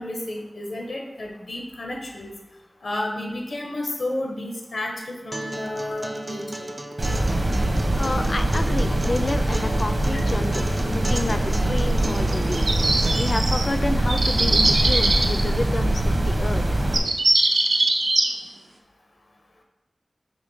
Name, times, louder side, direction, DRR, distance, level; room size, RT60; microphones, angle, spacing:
voice 1, 0.0-2.3 2.8-6.6 10.1-10.2, left 1 dB, 90° left, 1 dB, 1.0 m, -31 dB
Acoustic guitar, 5.3-13.3, right 1 dB, 35° right, 0.5 m, -34 dB
sound 1, 7.0-17.0, right 1 dB, 60° right, 1.0 m, -23 dB
voice 2, 8.0-12.7 13.2-16.8, left 2 dB, 45° left, 8 dB, 0.4 m, -29 dB
sound 2, 12.1-13.7 14.1-15.4 16.6-16.7 16.9-18.3, right 2 dB, 90° right, 0.6 m, -21 dB
5.1 x 3.4 x 5.5 m, 1.0 s
wide cardioid pair, 90°, 0 cm